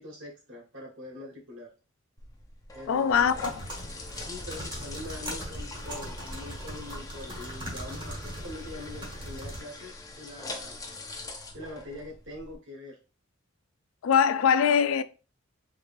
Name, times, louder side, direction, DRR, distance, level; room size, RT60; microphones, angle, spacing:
voice 1, 0.0-1.7 2.7-3.3 4.3-10.8 11.5-13.0, left 1 dB, 65° right, 1.5 m, -43 dB
sound 1, 2.2-12.6, left 2 dB, 15° left, 0.5 m, -43 dB
voice 2, 2.9-3.5 14.0-15.0, left 7 dB, 75° left, 0.3 m, -22 dB
sound 2, 3.1-9.6, equal, 25° right, 1.3 m, -40 dB
3.7 x 3.1 x 2.6 m
head